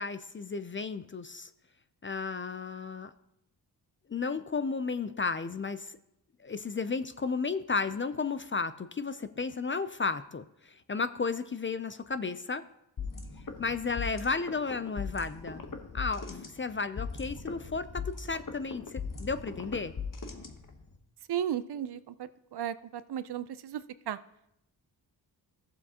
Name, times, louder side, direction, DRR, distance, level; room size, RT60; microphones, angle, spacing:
voice 1, 0.0-1.5 2.0-3.1 4.1-6.0 6.4-12.6 13.6-15.6 15.9-19.9, left 4 dB, 30° left, 12 dB, 0.4 m, -33 dB
sound 1, 13.0-21.0, left 5 dB, 45° left, 1.1 m, -39 dB
voice 2, 21.3-24.2, right 10 dB, 60° right, 14 dB, 0.5 m, -35 dB
15.0 x 7.1 x 2.8 m, 0.82 s
cardioid pair, 70°, 45 cm